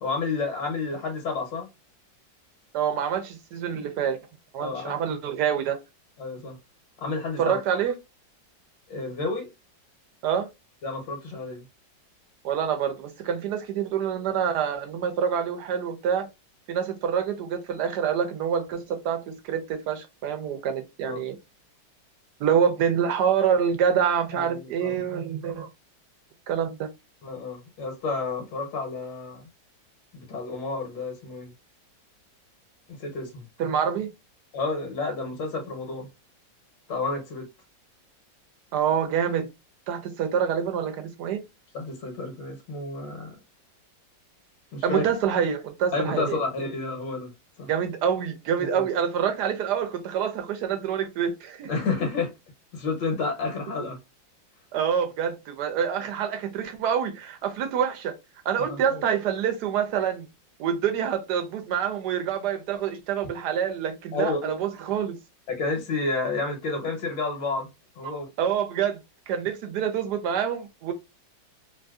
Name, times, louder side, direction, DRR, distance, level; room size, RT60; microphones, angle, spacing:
voice 1, 0.0-1.7 4.6-5.0 6.2-6.6 7.0-7.6 8.9-9.5 10.8-11.6 21.0-21.2 24.3-25.0 27.2-29.4 30.1-31.5 33.0-33.4 34.5-36.1 36.9-37.5 41.7-43.4 44.7-45.0 45.9-47.3 47.6-47.7 48.6-48.9 51.7-52.3 52.7-54.0 58.7-59.0 64.1-64.6 65.5-67.7 68.0-68.3, left 3 dB, 75° left, 1.5 m, -30 dB
voice 2, 2.7-4.2 4.5-5.8 7.4-7.9 10.2-10.5 12.4-16.3 16.7-21.4 22.4-25.7 26.5-26.9 33.6-34.1 38.7-39.5 39.9-41.4 44.8-46.4 47.7-51.7 54.7-58.2 58.4-60.3 60.6-65.2 68.0-69.0 69.3-70.9, right 8 dB, 70° right, 1.1 m, -26 dB
3.2 x 2.5 x 2.3 m
omnidirectional pair, 2.0 m